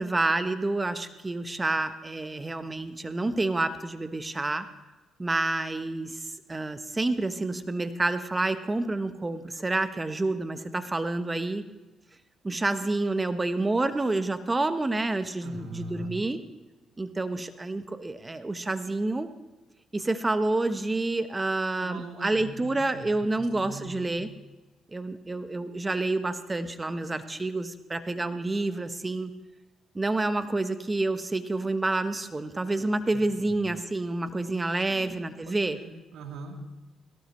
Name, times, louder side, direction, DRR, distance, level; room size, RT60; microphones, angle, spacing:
voice 1, 0.0-4.7 5.2-11.6 12.4-16.4 17.0-19.3 19.9-24.3 24.9-29.3 29.9-35.8, right 2 dB, 20° right, 10 dB, 1.0 m, -28 dB
voice 2, 15.4-16.1 21.8-24.1 33.1-33.6 34.9-35.2 35.4-36.6, right 2 dB, 85° right, 1 dB, 2.7 m, -42 dB
18.0 x 17.5 x 3.1 m, 1.1 s
cardioid pair, 90°, 0 cm